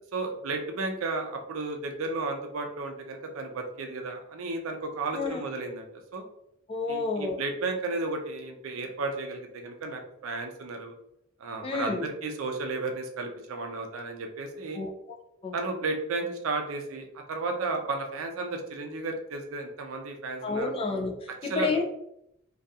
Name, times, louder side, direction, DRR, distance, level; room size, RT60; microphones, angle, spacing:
voice 1, 0.1-5.9 6.1-6.2 6.9-10.9 11.4-14.8 15.5-20.7 21.4-21.8, right 3 dB, 80° right, 4 dB, 0.4 m, -33 dB
voice 2, 5.1-5.4 6.7-7.4 11.6-12.1 14.7-14.9 15.4-15.5 20.4-21.8, left 3 dB, 25° left, 2 dB, 0.4 m, -30 dB
2.7 x 2.3 x 2.3 m, 0.78 s
head